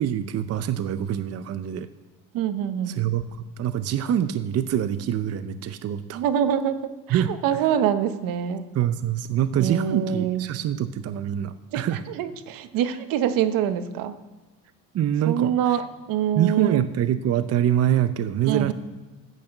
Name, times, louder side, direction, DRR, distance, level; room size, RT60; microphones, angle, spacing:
voice 1, 0.0-1.9 2.9-6.2 7.1-7.3 8.7-12.0 14.9-15.5 16.4-18.7, right 10 dB, 45° right, 12 dB, 0.7 m, -25 dB
voice 2, 2.3-3.0 6.1-8.7 9.6-10.5 11.7-14.2 15.2-16.9 18.5-18.7, right 9 dB, 75° right, 11 dB, 1.1 m, -25 dB
10.5 x 8.4 x 7.8 m, 1.2 s
cardioid pair, 110°, 34 cm